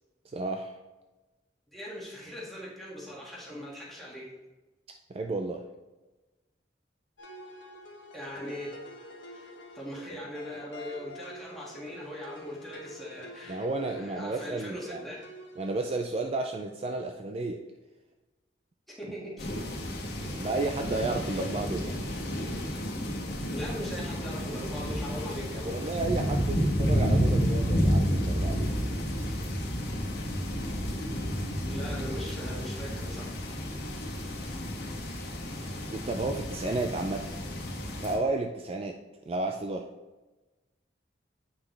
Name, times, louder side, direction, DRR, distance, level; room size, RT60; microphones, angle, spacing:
voice 1, 0.2-0.8 5.1-5.7 13.5-15.1 15.6-17.6 20.2-22.0 25.6-28.7 35.9-37.3 38.0-39.0 39.3-39.9, right 2 dB, 35° right, 4 dB, 0.4 m, -32 dB
voice 2, 1.7-4.3 8.1-8.8 9.3-15.3 19.0-19.5 23.5-25.7 31.7-33.3, equal, ahead, -6 dB, 1.8 m, -40 dB
sound 1, 7.2-15.8, left 1 dB, 90° left, 1.2 m, -48 dB
sound 2, 19.4-38.2, equal, 60° left, 1.4 m, -31 dB
8.1 x 5.5 x 3.3 m, 1.2 s
head